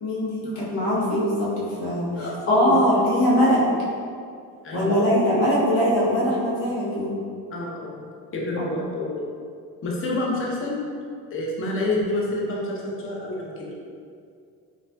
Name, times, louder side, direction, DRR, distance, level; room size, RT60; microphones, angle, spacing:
voice 1, 0.0-3.6 4.7-7.1 8.6-8.7, equal, 90° left, -7 dB, 1.0 m, -22 dB
voice 2, 2.2-2.8 4.6-5.1 7.5-8.0 8.3-9.2 9.8-10.8 11.3-13.7, left 2 dB, 30° left, -3 dB, 0.7 m, -28 dB
4.0 x 2.4 x 2.2 m, 2.3 s
supercardioid pair, 70°, 41 cm